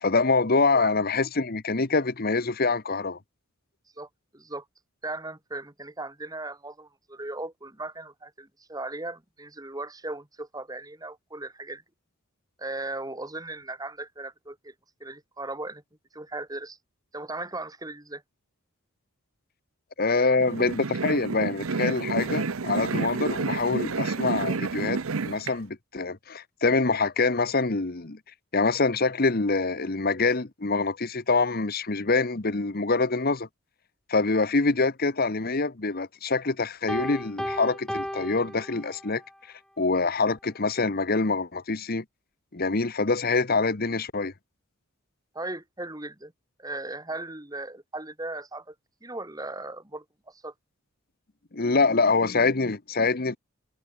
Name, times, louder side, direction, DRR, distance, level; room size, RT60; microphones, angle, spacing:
voice 1, 0.0-3.2 20.0-28.2 28.5-33.5 34.1-39.2 39.8-42.0 42.5-44.3 51.5-53.4, left 3 dB, 45° left, 1.1 m, -25 dB
voice 2, 4.3-4.6 5.0-11.8 12.6-14.7 15.0-15.8 16.1-16.8 17.1-18.2 45.3-46.3 46.6-48.7 49.0-50.5, right 2 dB, 15° right, 2.5 m, -37 dB
sound 1, 20.4-25.5, right 4 dB, 70° right, 0.8 m, -29 dB
Piano, 36.9-39.3, equal, ahead, 2.0 m, -34 dB
head